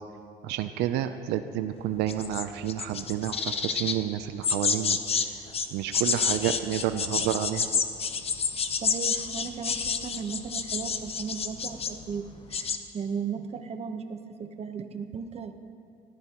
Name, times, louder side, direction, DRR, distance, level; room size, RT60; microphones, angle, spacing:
voice 1, 0.4-5.0 5.7-7.7, right 12 dB, 90° right, 9 dB, 0.5 m, -30 dB
sound 1, 2.1-4.0 4.4-5.3 5.5-12.0 12.3-12.8, left 6 dB, 35° left, 0.8 m, -29 dB
voice 2, 8.8-12.7 12.9-15.5, right 6 dB, 40° right, 7 dB, 1.0 m, -36 dB
19.5 x 15.0 x 3.0 m, 2.4 s
cardioid pair, 110°, 17 cm